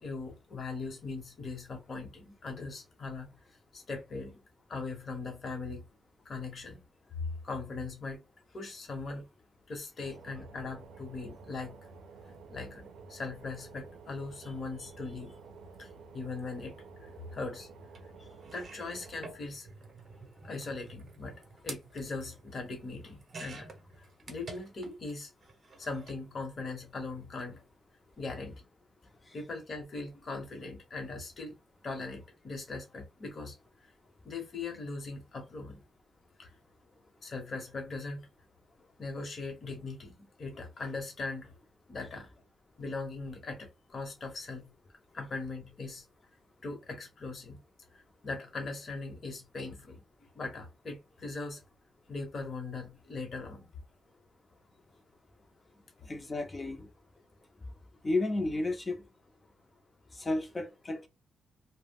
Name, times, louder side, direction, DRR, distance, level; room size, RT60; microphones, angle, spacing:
voice 1, 0.0-3.3 3.7-4.3 4.7-5.8 6.2-6.8 7.1-8.2 8.5-9.3 9.7-11.8 12.5-15.3 15.8-17.7 18.5-19.7 20.4-25.3 25.7-27.6 28.2-28.6 29.3-31.5 31.8-33.6 33.8-33.9 34.2-35.8 36.4-36.5 37.2-38.3 39.0-41.5 41.9-42.3 42.8-44.7 45.1-46.0 46.6-47.6 47.9-50.0 50.3-51.6 52.1-53.7, left 3 dB, 45° left, 0.9 m, -40 dB
sound 1, 10.0-19.4, right 4 dB, 90° right, 0.4 m, -51 dB
sound 2, 17.9-18.0 18.4-25.1 25.4-26.2 27.2-27.4 27.7-27.8, right 3 dB, 40° right, 0.7 m, -49 dB
voice 2, 56.1-56.9 58.0-59.0 60.2-61.1, left 2 dB, 25° left, 0.5 m, -32 dB
2.2 x 2.0 x 3.4 m
cardioid pair, 130°, 0 cm